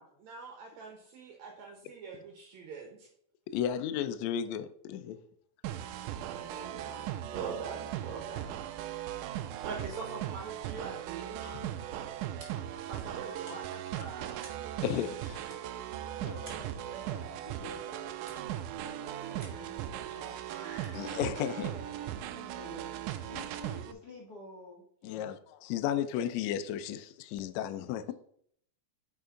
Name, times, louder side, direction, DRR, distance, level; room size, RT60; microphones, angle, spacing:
voice 1, 0.2-3.1 6.3-8.5 9.7-11.5 12.9-14.4 19.0-21.2, right 5 dB, 70° right, 1 dB, 2.2 m, -44 dB
voice 2, 3.5-5.2 11.4-11.8 14.8-15.4 20.9-21.7 25.0-28.1, left 9 dB, 75° left, 11 dB, 1.7 m, -34 dB
sound 1, 5.6-23.9, right 11 dB, 90° right, 2.1 m, -38 dB
sound 2, 11.3-22.5, right 3 dB, 35° right, 1.8 m, -59 dB
voice 3, 12.1-13.2 13.5-14.0 15.2-15.4 16.1-18.1 18.7-20.4 21.6-25.4, left 2 dB, 45° left, -2 dB, 1.4 m, -51 dB
9.5 x 5.3 x 3.8 m, 0.66 s
omnidirectional pair, 3.6 m